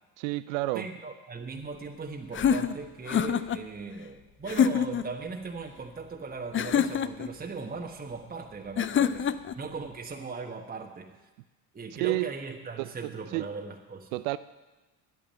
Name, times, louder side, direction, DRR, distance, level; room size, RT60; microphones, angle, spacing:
voice 1, 0.2-0.9 11.9-12.3 12.8-13.5 14.1-14.4, right 19 dB, 75° right, 0.5 m, -30 dB
voice 2, 0.7-11.3 11.7-14.1, right 4 dB, 20° right, 1.3 m, -39 dB
sound 1, 2.3-3.6 4.5-5.1 6.5-7.3 8.8-9.6, left 8 dB, 30° left, 0.6 m, -26 dB
9.7 x 9.1 x 9.0 m
hypercardioid pair, 70°, 41 cm